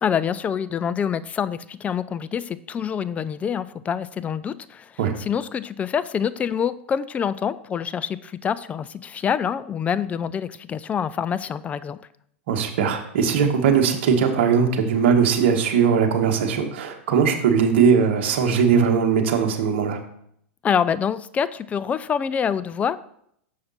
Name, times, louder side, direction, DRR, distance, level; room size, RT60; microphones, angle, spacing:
voice 1, 0.0-12.0 20.6-23.0, left 7 dB, 20° left, 17 dB, 0.3 m, -26 dB
voice 2, 12.5-20.0, right 6 dB, 65° right, 3 dB, 1.3 m, -20 dB
6.5 x 5.7 x 4.1 m, 0.70 s
hypercardioid pair, 105°, 7 cm